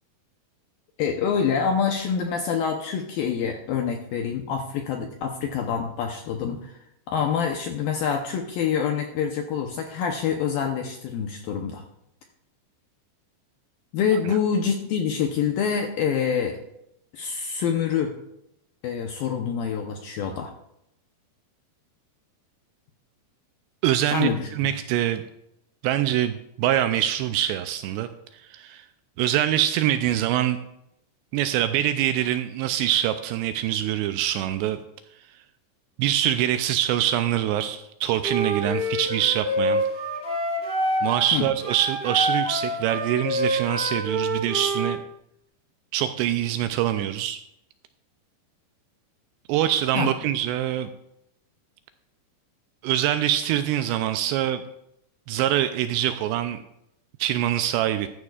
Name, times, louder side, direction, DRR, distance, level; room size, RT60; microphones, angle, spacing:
voice 1, 1.0-6.8 7.1-11.8 13.9-16.6 17.1-18.1 18.8-20.5 24.1-24.5 41.3-41.5 49.9-50.1, left 7 dB, 80° left, 3 dB, 2.1 m, -26 dB
voice 2, 23.8-25.2 25.8-28.1 28.3-28.9 29.2-30.6 31.3-34.8 36.0-39.9 41.0-45.0 45.9-47.4 49.5-50.9 52.8-54.6 55.3-56.6 57.2-58.1, right 12 dB, 85° right, 9 dB, 2.6 m, -24 dB
Wind instrument woodwind instrument, 38.2-41.3 41.6-45.0, equal, 15° right, 2.4 m, -27 dB
14.5 x 11.0 x 2.4 m, 0.78 s
omnidirectional pair, 5.1 m